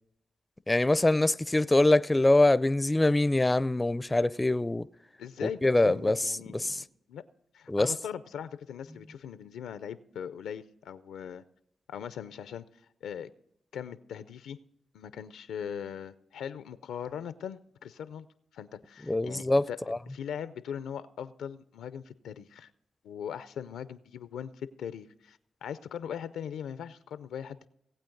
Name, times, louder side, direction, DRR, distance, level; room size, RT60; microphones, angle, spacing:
voice 1, 0.7-4.9 5.4-6.8 7.7-7.9 19.1-20.0, left 2 dB, 20° left, 0.4 m, -24 dB
voice 2, 5.2-7.2 7.5-11.4 11.9-12.6 13.0-13.3 13.7-14.6 14.9-18.3 18.5-19.8 20.1-22.7 23.0-27.7, left 8 dB, 85° left, 0.4 m, -40 dB
18.5 x 8.5 x 3.9 m
supercardioid pair, 45°, 0 cm